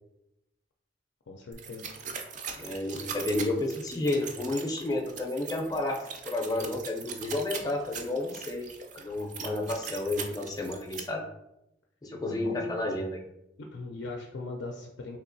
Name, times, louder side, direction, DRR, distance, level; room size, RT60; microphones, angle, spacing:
voice 1, 1.3-2.0 12.3-12.7 13.6-15.2, left 2 dB, 90° left, 1 dB, 0.4 m, -40 dB
sound 1, 1.5-11.0, right 6 dB, 40° right, 0.3 m, -40 dB
voice 2, 2.6-6.0 6.2-8.6 8.9-11.3 12.0-13.2, left 2 dB, 20° left, 1 dB, 0.4 m, -31 dB
3.4 x 2.7 x 2.6 m, 0.86 s
head